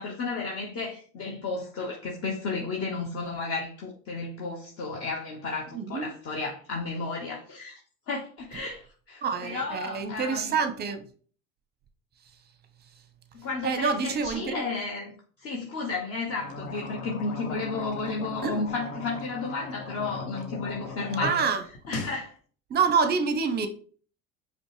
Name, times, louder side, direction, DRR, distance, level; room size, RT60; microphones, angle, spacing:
voice 1, 0.0-7.8 8.1-10.6 13.3-15.1 15.4-21.5 21.9-22.4, left 3 dB, 35° left, 0.9 m, -33 dB
voice 2, 5.7-6.1 9.2-11.0 13.6-14.6 18.4-18.6 21.2-21.6 22.7-23.7, right 5 dB, 25° right, 0.7 m, -27 dB
sound 1, 16.3-21.3 21.6-22.2, left 3 dB, 75° left, 1.0 m, -38 dB
5.1 x 2.2 x 3.2 m
hypercardioid pair, 85°, 40 cm